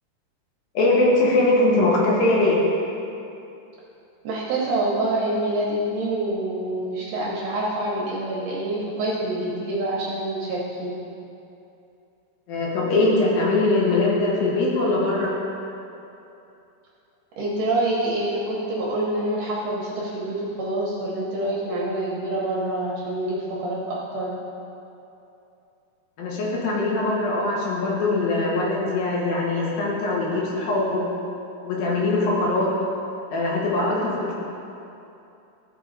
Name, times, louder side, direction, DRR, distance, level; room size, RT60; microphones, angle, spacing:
voice 1, 0.7-2.6 12.5-15.3 26.2-31.0 31.6-32.7 33.3-34.4, left 2 dB, 65° left, -5 dB, 3.0 m, -21 dB
voice 2, 4.2-10.9 17.4-24.3, right 1 dB, 70° right, -5 dB, 1.9 m, -26 dB
14.5 x 5.0 x 4.0 m, 2.8 s
omnidirectional pair, 5.0 m